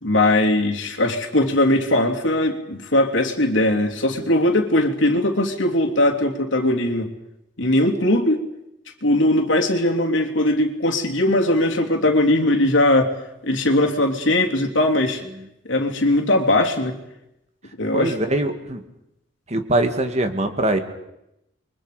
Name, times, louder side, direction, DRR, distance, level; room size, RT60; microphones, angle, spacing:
voice 1, 0.0-7.1 7.6-8.4 9.0-13.1 13.4-15.2 15.7-17.0 17.8-18.1, left 1 dB, 80° left, 2 dB, 3.3 m, -19 dB
voice 2, 17.9-18.8 19.5-20.8, right 1 dB, 35° right, 6 dB, 2.3 m, -22 dB
30.0 x 24.0 x 5.2 m, 0.84 s
head